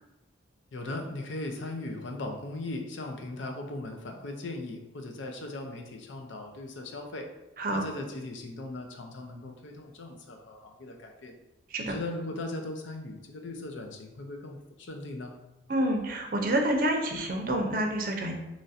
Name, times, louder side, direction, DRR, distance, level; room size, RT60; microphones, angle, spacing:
voice 1, 0.7-7.3 7.7-11.4 11.8-15.4, left 2 dB, 80° left, 3 dB, 0.5 m, -38 dB
voice 2, 15.7-18.3, right 1 dB, 45° right, 2 dB, 0.5 m, -28 dB
3.1 x 2.5 x 4.0 m, 0.96 s
head